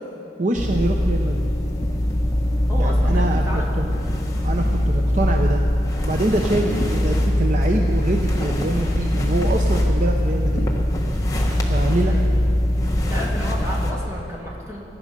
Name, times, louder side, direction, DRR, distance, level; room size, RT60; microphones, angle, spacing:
voice 1, 0.4-1.5 2.8-3.4 3.8-3.9 4.4-5.6 6.0-10.7 11.7-12.1, right 2 dB, 40° right, 2 dB, 0.7 m, -25 dB
sound 1, 0.6-13.9, left 1 dB, 20° left, 1.3 m, -21 dB
voice 2, 2.7-4.0 6.5-6.7 12.0-12.3 13.1-14.8, equal, 15° right, -4 dB, 2.4 m, -33 dB
18.0 x 11.0 x 5.2 m, 2.9 s
head